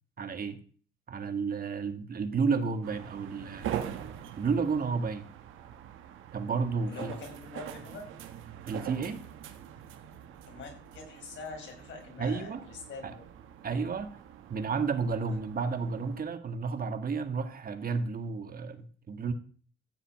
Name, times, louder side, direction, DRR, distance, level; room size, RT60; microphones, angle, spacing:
voice 1, 0.2-0.6 1.1-3.8 4.4-5.3 6.3-7.1 8.7-9.2 12.2-12.7 13.0-13.1 13.6-14.2 14.5-19.3, right 5 dB, 45° right, 8 dB, 1.8 m, -31 dB
sound 1, 2.8-16.2, right 10 dB, 85° right, 1.6 m, -43 dB
voice 2, 6.9-8.1 10.5-13.2, left 4 dB, 70° left, 2 dB, 5.6 m, -44 dB
14.0 x 5.6 x 8.8 m, 0.43 s
cardioid pair, 90°, 20 cm